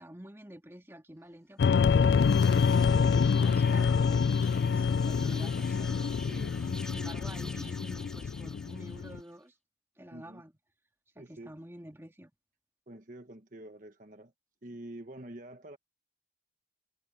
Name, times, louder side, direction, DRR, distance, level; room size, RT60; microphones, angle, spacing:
voice 1, 0.0-9.6 10.0-10.5 11.2-12.3, right 1 dB, 15° right, 2.2 m, -49 dB
sound 1, 1.6-9.2, left 6 dB, 65° left, 0.3 m, -26 dB
sound 2, 1.9-9.3, left 1 dB, 5° left, 1.9 m, -48 dB
voice 2, 6.3-6.6 10.1-10.4 11.2-11.5 12.9-14.3 14.6-15.8, right 1 dB, 45° right, 1.3 m, -47 dB
head